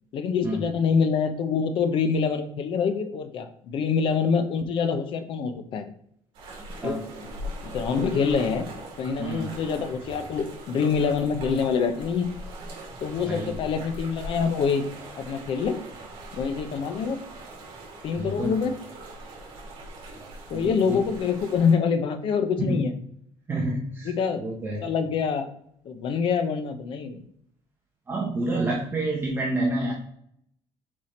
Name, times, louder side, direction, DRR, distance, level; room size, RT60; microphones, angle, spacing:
voice 1, 0.1-5.8 6.8-7.0 7.6-8.7 9.0-12.3 13.0-14.9 15.2-15.8 16.3-17.2 18.0-18.8 20.5-22.9 24.0-24.4 24.8-25.5 25.8-27.2, left 6 dB, 45° left, 9 dB, 0.8 m, -25 dB
sound 1, 6.3-21.7, right 1 dB, 50° right, 2.8 m, -41 dB
voice 2, 18.2-18.5 20.5-21.0 22.6-22.8 23.5-24.1 24.3-24.9 28.1-29.9, right 2 dB, 20° right, -2 dB, 1.0 m, -28 dB
5.6 x 4.8 x 4.3 m, 0.70 s
cardioid pair, 170°, 12 cm